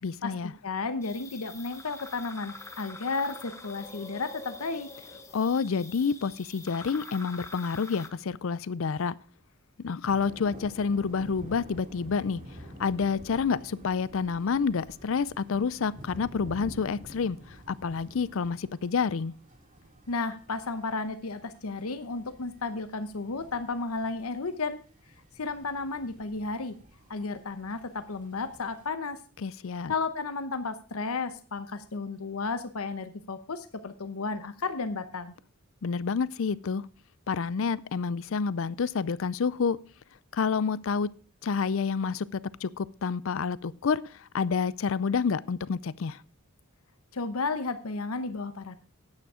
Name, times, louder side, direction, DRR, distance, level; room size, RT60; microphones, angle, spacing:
voice 1, 0.0-0.5 5.3-9.2 9.8-12.4 12.8-17.4 17.7-19.3 29.4-29.9 35.8-36.9 37.3-39.8 40.3-41.1 41.4-46.2, left 5 dB, 65° left, 20 dB, 0.5 m, -28 dB
voice 2, 0.6-4.9 20.1-24.8 25.4-26.8 27.1-29.2 29.9-35.3 47.1-48.7, left 3 dB, 85° left, 10 dB, 0.9 m, -33 dB
sound 1, 1.0-8.1, left 3 dB, 15° left, 1.1 m, -45 dB
sound 2, 10.1-28.9, equal, 35° right, 2.5 m, -49 dB
9.7 x 8.7 x 4.9 m, 0.39 s
head